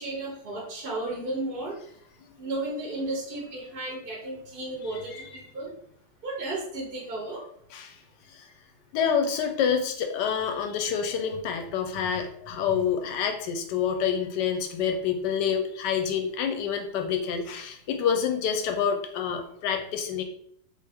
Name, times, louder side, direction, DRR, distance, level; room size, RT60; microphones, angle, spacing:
voice 1, 0.0-1.8 2.4-5.7 6.2-7.4 12.1-12.2 12.5-12.6, right 2 dB, 55° right, -2 dB, 0.6 m, -34 dB
voice 2, 4.9-5.2 7.7-7.9 8.4-8.5 8.9-20.2, left 7 dB, 75° left, 5 dB, 1.1 m, -27 dB
3.5 x 2.7 x 3.4 m, 0.67 s
omnidirectional pair, 2.0 m